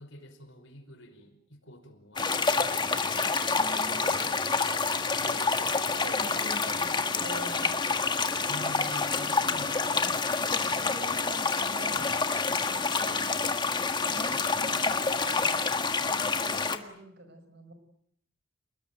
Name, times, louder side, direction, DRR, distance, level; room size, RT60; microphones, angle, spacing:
voice 1, 0.0-3.0 8.4-9.8, equal, 70° left, 7 dB, 5.3 m, -47 dB
sound 1, 2.2-16.8, left 4 dB, 25° left, 1.7 m, -28 dB
voice 2, 3.5-4.3 5.2-7.8 10.3-12.1 12.6-13.4 14.1-15.5 15.8-17.7, equal, 60° right, 10 dB, 5.1 m, -45 dB
29.0 x 20.5 x 9.2 m, 0.72 s
head